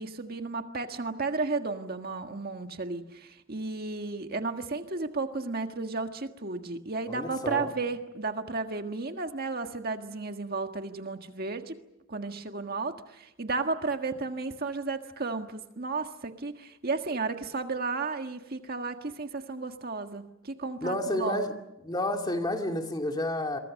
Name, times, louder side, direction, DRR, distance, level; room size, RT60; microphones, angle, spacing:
voice 1, 0.0-11.7 12.1-21.4, right 3 dB, 50° right, 1.7 m, -33 dB
voice 2, 7.1-7.7 20.8-21.5 21.8-23.6, left 1 dB, 20° left, 2.6 m, -30 dB
28.0 x 23.5 x 6.5 m
head